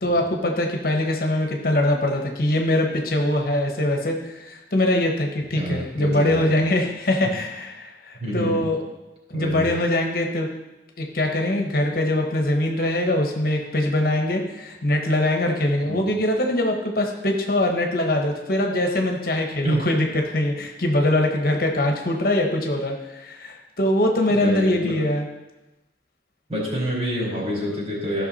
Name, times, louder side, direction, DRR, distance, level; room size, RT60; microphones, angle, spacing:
voice 1, 0.0-8.8 9.3-10.5 11.0-20.1 20.3-25.3, left 1 dB, 55° left, 3 dB, 1.2 m, -22 dB
voice 2, 5.5-6.6 7.2-7.3 8.2-8.7 9.3-9.7 15.9-16.1 19.6-19.9 24.3-25.0 26.5-28.3, equal, 35° right, -4 dB, 4.3 m, -27 dB
15.5 x 5.9 x 4.2 m, 1.0 s
head